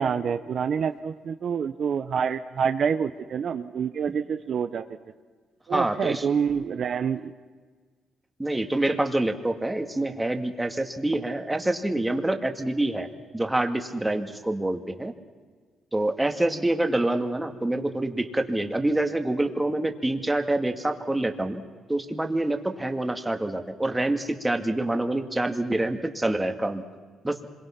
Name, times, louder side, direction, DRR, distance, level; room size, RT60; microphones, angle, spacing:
voice 1, 0.0-4.8 5.7-7.3, right 7 dB, 55° right, 10 dB, 0.8 m, -27 dB
voice 2, 5.7-6.3 8.4-13.1 13.3-15.1 15.9-21.6 21.9-26.8 27.2-27.4, right 1 dB, 10° right, 5 dB, 2.0 m, -26 dB
26.5 x 22.5 x 5.9 m, 1.5 s
cardioid pair, 90°, 0 cm